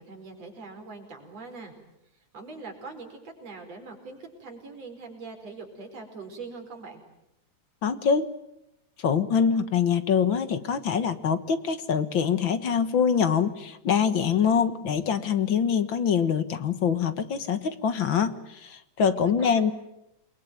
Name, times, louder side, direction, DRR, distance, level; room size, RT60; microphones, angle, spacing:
voice 1, 0.0-1.7 2.3-7.0 19.2-19.7, right 4 dB, 55° right, 4 dB, 5.8 m, -42 dB
voice 2, 7.8-8.3 9.0-19.7, left 7 dB, 50° left, 11 dB, 1.8 m, -24 dB
29.0 x 22.0 x 9.3 m, 0.84 s
omnidirectional pair, 3.4 m